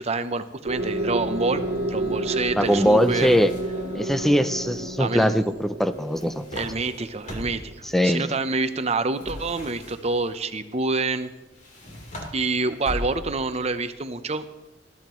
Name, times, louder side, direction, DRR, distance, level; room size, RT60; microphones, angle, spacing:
voice 1, 0.0-3.3 5.0-5.5 6.5-11.3 12.3-14.4, right 3 dB, 35° right, 10 dB, 0.8 m, -27 dB
sound 1, 0.7-8.5, right 3 dB, 65° right, 1.1 m, -31 dB
Wind instrument woodwind instrument, 0.8-5.4, left 4 dB, 55° left, 1.0 m, -37 dB
sound 2, 2.6-3.9 5.9-7.8 9.2-10.3 11.5-13.5, equal, 40° left, 3.2 m, -39 dB
voice 2, 2.6-3.5 3.9-6.4 7.9-8.3, equal, ahead, 11 dB, 0.4 m, -21 dB
19.5 x 13.5 x 3.1 m, 1.1 s
head